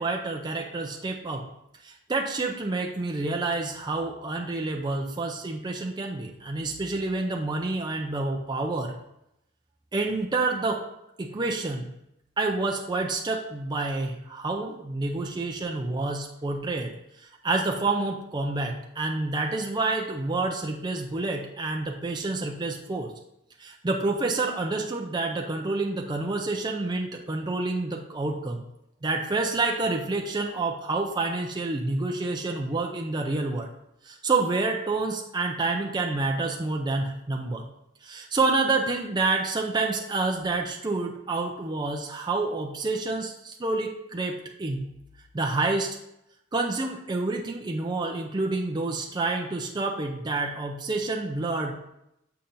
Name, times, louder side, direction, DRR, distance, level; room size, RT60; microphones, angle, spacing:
voice 1, 0.0-1.5 1.8-9.0 9.9-10.8 11.2-11.9 12.4-23.1 23.6-28.6 29.0-33.7 34.0-37.7 38.0-44.9 45.3-46.0 46.5-51.7, right 3 dB, 20° right, 1 dB, 0.5 m, -28 dB
6.9 x 5.6 x 2.6 m, 0.83 s
head